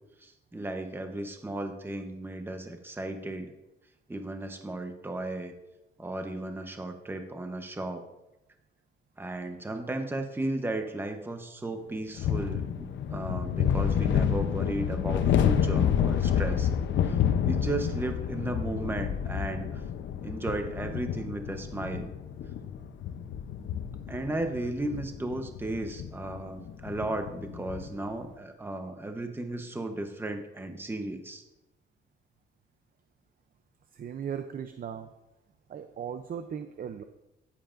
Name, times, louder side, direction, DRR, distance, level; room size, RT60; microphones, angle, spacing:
voice 1, 0.2-3.5 4.1-5.5 6.0-8.0 9.2-16.7 17.0-17.2 17.5-19.8 20.2-22.1 24.1-31.4, right 2 dB, 10° right, 6 dB, 0.9 m, -35 dB
sound 1, 12.2-28.0, left 8 dB, 70° left, 0.7 m, -29 dB
voice 2, 33.9-35.1 35.7-37.0, right 8 dB, 45° right, 9 dB, 0.6 m, -37 dB
14.0 x 7.3 x 2.6 m, 0.93 s
cardioid pair, 90°, 20 cm